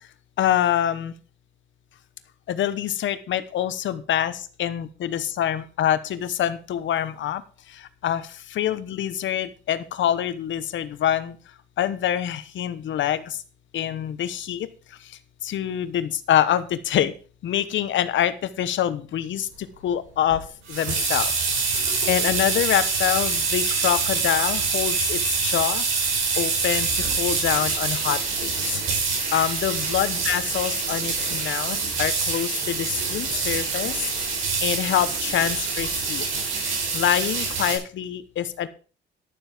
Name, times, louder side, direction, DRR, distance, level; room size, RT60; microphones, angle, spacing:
voice 1, 0.4-1.1 2.5-7.4 7.7-11.4 11.8-13.4 13.7-14.7 15.4-17.1 17.4-21.3 21.6-25.8 26.4-28.8 29.3-34.1 34.6-36.2 36.9-38.7, left 10 dB, 70° left, 13 dB, 1.1 m, -25 dB
sound 1, 20.3-37.8, right 4 dB, 85° right, 5.1 m, -25 dB
11.5 x 7.3 x 5.1 m, 0.37 s
cardioid pair, 90°, 20 cm